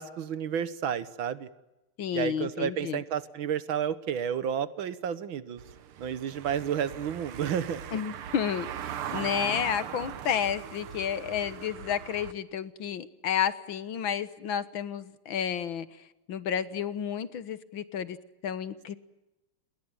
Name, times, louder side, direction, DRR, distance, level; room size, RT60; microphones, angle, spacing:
voice 1, 0.0-1.5 2.1-5.6 6.0-7.8, right 8 dB, 70° right, 15 dB, 1.9 m, -31 dB
voice 2, 2.0-3.0 7.9-15.9 16.3-18.2 18.4-19.0, left 8 dB, 65° left, 14 dB, 1.9 m, -31 dB
Car passing by / Engine, 5.6-12.3, right 10 dB, 90° right, 2.0 m, -40 dB
29.5 x 20.5 x 9.0 m, 0.98 s
omnidirectional pair, 2.3 m